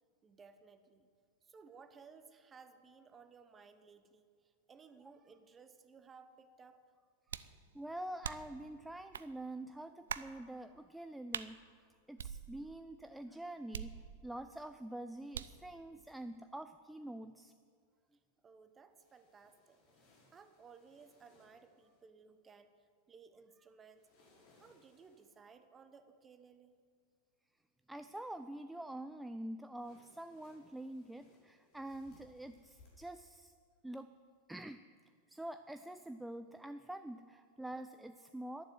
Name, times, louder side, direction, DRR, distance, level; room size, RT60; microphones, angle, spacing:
voice 1, 0.2-1.1 1.4-6.8 7.3-7.5 18.4-19.8 20.3-24.1 24.5-26.8, right 5 dB, 20° right, 10 dB, 1.0 m, -59 dB
sound 1, 7.3-7.6 8.2-8.6 9.1-9.3 10.1-10.4 11.3-11.5 12.2-12.8 13.7-14.4 15.3-15.7, right 8 dB, 65° right, 0.5 m, -43 dB
voice 2, 7.4-11.6 12.1-17.5 27.9-33.5 33.8-34.1 34.5-34.8 35.3-38.6, right 1 dB, 5° right, 9 dB, 0.4 m, -46 dB
sound 2, 18.9-22.0 23.9-25.4 29.7-32.9, left 2 dB, 45° left, 4.9 m, -68 dB
12.0 x 11.5 x 7.8 m, 2.1 s
figure-of-eight pair, 90°, 0 cm